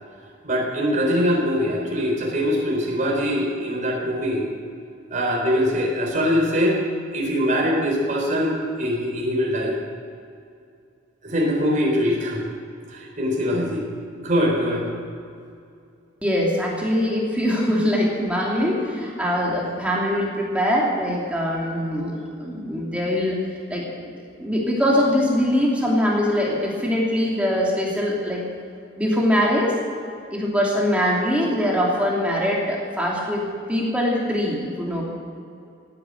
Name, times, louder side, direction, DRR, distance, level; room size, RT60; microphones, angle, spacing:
voice 1, 0.4-4.5 5.1-6.8 7.1-9.8 11.2-12.4 12.9-13.8 14.2-14.9, equal, 40° right, -2 dB, 4.0 m, -22 dB
voice 2, 16.2-22.1 22.4-23.4 23.7-24.1 24.4-28.4 29.0-29.8 30.3-35.0, equal, 5° right, -4 dB, 2.8 m, -22 dB
17.5 x 10.0 x 7.8 m, 2.5 s
head